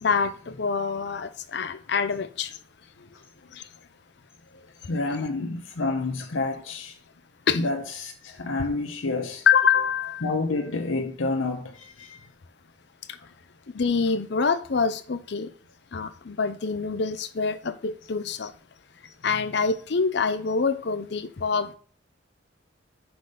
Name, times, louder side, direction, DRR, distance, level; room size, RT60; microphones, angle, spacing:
voice 1, 0.0-2.6 3.5-3.6 7.5-7.6 9.5-10.3 13.1-13.2 13.7-15.5 15.9-18.5 19.2-21.8, left 5 dB, 55° left, 0.6 m, -25 dB
voice 2, 4.9-7.0 7.5-9.5 10.2-12.2, left 3 dB, 80° left, 0.9 m, -29 dB
6.0 x 4.0 x 5.0 m
head